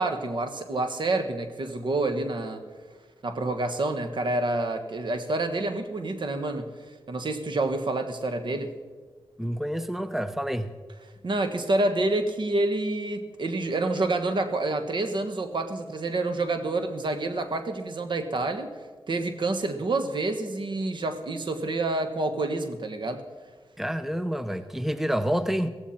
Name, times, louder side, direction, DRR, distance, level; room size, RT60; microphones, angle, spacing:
voice 1, 0.0-2.6 3.2-6.7 7.1-8.7 11.2-18.7 19.1-23.2, right 2 dB, 60° right, 8 dB, 1.5 m, -28 dB
voice 2, 9.4-10.7 23.8-25.7, equal, 5° right, 12 dB, 0.7 m, -28 dB
15.5 x 15.0 x 4.4 m, 1.4 s
cardioid pair, 65°, 9 cm